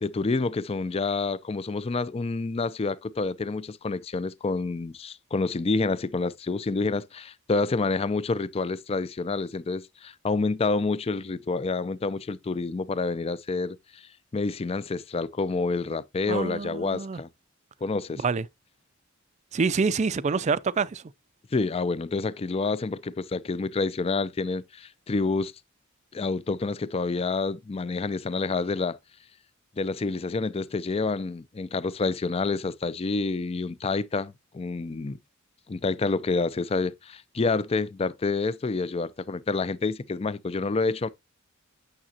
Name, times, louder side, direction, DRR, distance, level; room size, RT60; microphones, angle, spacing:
voice 1, 0.0-14.0 14.3-17.3 17.8-18.2 21.5-25.5 26.1-29.0 29.8-35.2 35.7-41.1, left 3 dB, 30° left, 0.4 m, -28 dB
voice 2, 16.3-17.2 18.2-18.4 19.5-21.0, right 5 dB, 35° right, 0.4 m, -26 dB
8.9 x 6.6 x 2.8 m
head